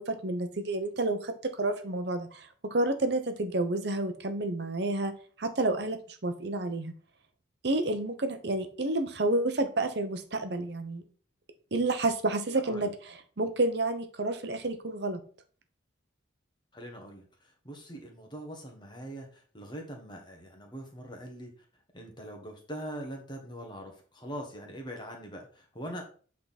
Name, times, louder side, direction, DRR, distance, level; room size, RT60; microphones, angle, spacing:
voice 1, 0.0-6.9 7.6-11.0 11.7-15.2, right 2 dB, 55° right, 7 dB, 0.8 m, -30 dB
voice 2, 16.7-21.5 21.9-26.0, equal, 25° left, 2 dB, 1.4 m, -42 dB
8.3 x 3.7 x 4.1 m, 0.41 s
head